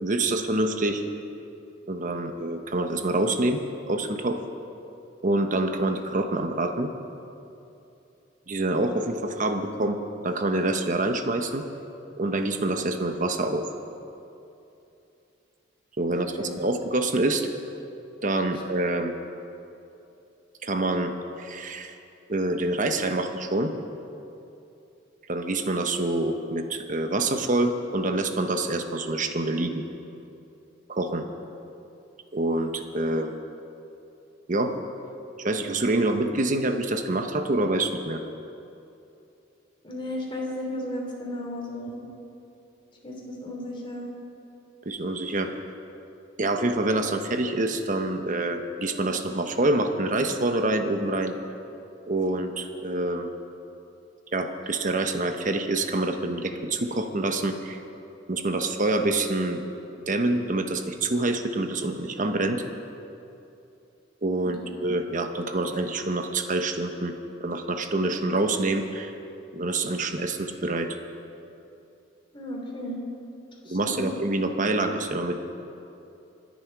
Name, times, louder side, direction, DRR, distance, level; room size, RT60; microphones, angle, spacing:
voice 1, 0.0-1.0 1.9-3.6 3.9-4.4 5.2-6.9 8.5-10.0 10.2-11.6 12.2-13.6 16.0-17.5 18.2-19.1 20.6-21.1 21.4-21.9 22.3-23.7 25.3-29.8 30.9-31.2 32.3-33.3 34.5-34.7 35.4-38.2 44.8-45.5 46.4-51.3 52.1-53.3 54.3-57.8 58.3-59.6 60.1-62.6 64.2-67.1 67.4-69.1 69.5-71.0 73.6-75.4, right 2 dB, 45° right, 6 dB, 1.1 m, -26 dB
voice 2, 16.1-16.5 39.8-42.0 43.0-44.1 64.4-64.8 72.3-73.0 73.7-74.1, left 1 dB, 30° left, -1 dB, 3.3 m, -34 dB
25.5 x 10.5 x 4.8 m, 2.7 s
head